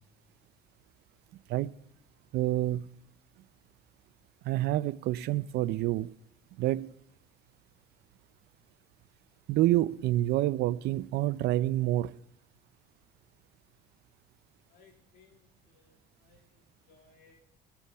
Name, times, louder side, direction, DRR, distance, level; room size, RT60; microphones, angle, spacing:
voice 1, 2.3-2.9 4.4-6.1 6.6-6.9 9.5-12.2, right 15 dB, 75° right, 0.5 m, -28 dB
voice 2, 14.7-17.4, left 5 dB, 75° left, 2.5 m, -63 dB
20.0 x 7.0 x 3.5 m
cardioid pair, 110°, 17 cm